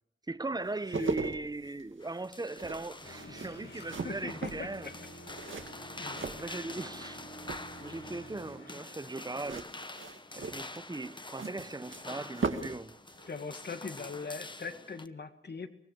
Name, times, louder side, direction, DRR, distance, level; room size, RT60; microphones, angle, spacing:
voice 1, 0.3-4.9 6.2-9.7 10.3-13.0, right 2 dB, 20° right, 0.9 m, -39 dB
sound 1, 0.6-7.1 7.4-8.0 9.3-12.8 13.1-13.3, right 4 dB, 70° right, 2.2 m, -39 dB
sound 2, 2.0-15.1, left 2 dB, 25° left, 1.0 m, -46 dB
sound 3, 3.0-9.5, right 1 dB, 80° left, 7.9 m, -50 dB
voice 2, 3.2-4.9 5.5-5.7 6.0-6.6 13.3-15.7, left 4 dB, 55° left, 2.1 m, -42 dB
24.5 x 20.0 x 6.8 m
wide cardioid pair, 115°, 21 cm